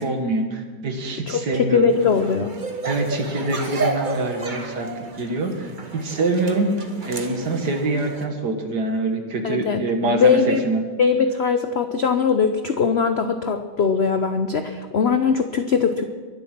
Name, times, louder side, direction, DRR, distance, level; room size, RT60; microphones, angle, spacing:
voice 1, 0.0-1.9 2.8-4.9 5.2-10.8, right 2 dB, 60° right, 4 dB, 2.2 m, -25 dB
voice 2, 1.3-2.6 9.4-10.6 11.0-16.0, left 6 dB, 75° left, 8 dB, 0.6 m, -21 dB
sound 1, 1.9-8.3, right 3 dB, 30° right, 1.2 m, -32 dB
23.0 x 8.1 x 6.0 m, 1.4 s
omnidirectional pair, 2.0 m